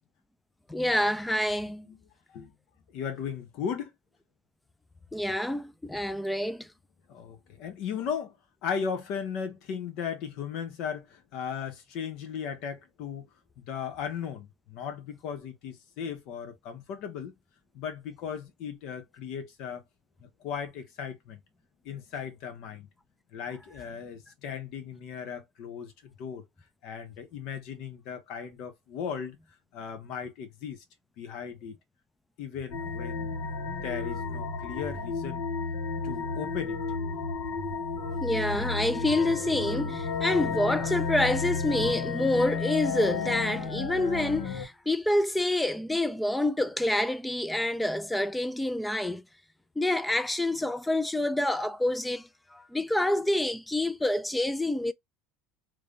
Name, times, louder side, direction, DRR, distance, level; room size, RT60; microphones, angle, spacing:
voice 1, 0.7-1.9 5.1-6.7 38.2-49.2 49.8-52.3 52.7-54.9, left 1 dB, 5° left, 0.4 m, -27 dB
voice 2, 2.9-3.9 7.1-8.3 8.6-13.3 13.6-17.3 17.7-19.8 20.4-21.4 21.8-22.9 23.3-25.9 26.2-26.4 26.8-29.4 29.7-30.8 31.2-31.7 32.4-33.3 33.8-35.4 36.0-36.8, left 7 dB, 55° left, 1.3 m, -36 dB
sound 1, 32.7-44.6, left 4 dB, 75° left, 1.6 m, -32 dB
3.4 x 3.3 x 2.6 m
supercardioid pair, 140°, 0 cm